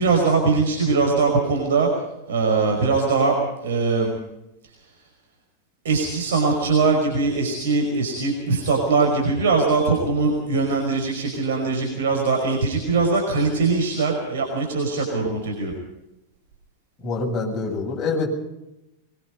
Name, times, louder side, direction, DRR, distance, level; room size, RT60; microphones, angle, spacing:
voice 1, 0.0-1.9 2.3-3.3 3.6-4.1 5.8-15.7, right 4 dB, 60° right, 2 dB, 5.3 m, -21 dB
voice 2, 17.0-18.3, left 3 dB, 25° left, -1 dB, 7.8 m, -25 dB
23.0 x 23.0 x 5.3 m, 0.91 s
figure-of-eight pair, 90°, 0 cm